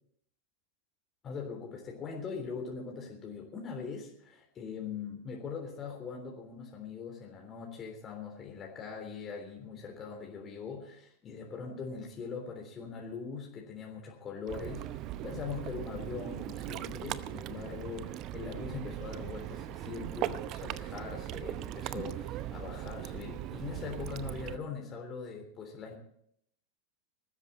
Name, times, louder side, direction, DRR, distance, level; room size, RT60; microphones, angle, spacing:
voice 1, 1.2-25.9, left 5 dB, 25° left, 1 dB, 3.5 m, -41 dB
Ocean, 14.5-24.6, right 13 dB, 35° right, 0.8 m, -39 dB
20.5 x 13.5 x 4.2 m, 0.67 s
figure-of-eight pair, 90°, 0 cm